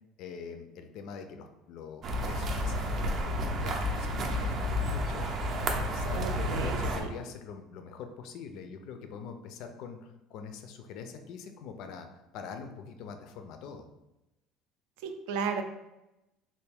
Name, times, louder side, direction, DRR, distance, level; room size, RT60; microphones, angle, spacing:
voice 1, 0.2-5.3 5.8-13.9, left 6 dB, 55° left, 7 dB, 0.4 m, -44 dB
sound 1, 2.0-7.0, equal, 35° right, 0.5 m, -31 dB
voice 2, 6.2-7.1 15.0-15.6, right 5 dB, 85° right, 5 dB, 0.5 m, -34 dB
3.3 x 2.6 x 3.4 m, 0.94 s
cardioid pair, 165°, 0 cm